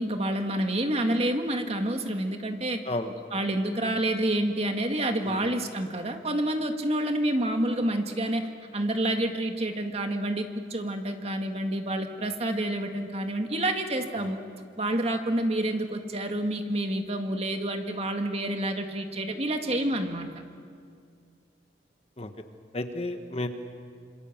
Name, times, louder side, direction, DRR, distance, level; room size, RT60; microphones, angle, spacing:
voice 1, 0.0-2.8 3.3-14.4 14.8-20.3, right 1 dB, 35° right, 5 dB, 1.9 m, -28 dB
voice 2, 22.7-23.5, left 1 dB, 35° left, 7 dB, 1.4 m, -32 dB
27.0 x 27.0 x 7.4 m, 2.3 s
head